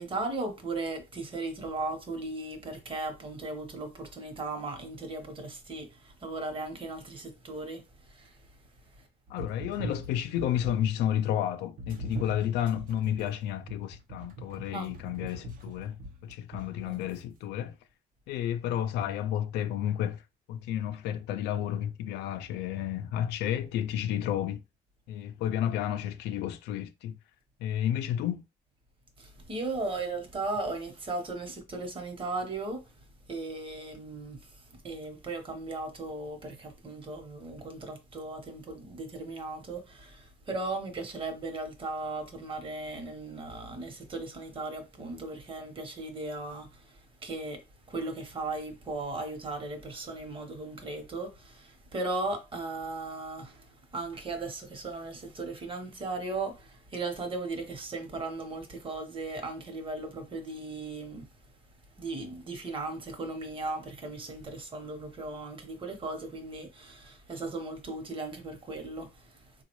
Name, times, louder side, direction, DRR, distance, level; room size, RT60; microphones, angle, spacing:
voice 1, 0.0-8.5 8.9-9.1 14.7-15.0 16.8-17.0 29.2-32.9 33.3-61.3 62.0-69.5, right 2 dB, 30° right, 1.1 m, -37 dB
voice 2, 9.3-17.8 18.3-20.2 20.5-24.6 25.1-27.2 27.6-28.4, left 10 dB, 85° left, 0.5 m, -31 dB
sound 1, 9.3-11.0 11.8-17.2, right 1 dB, 55° right, 0.8 m, -42 dB
3.7 x 2.3 x 3.0 m
cardioid pair, 110°, 17 cm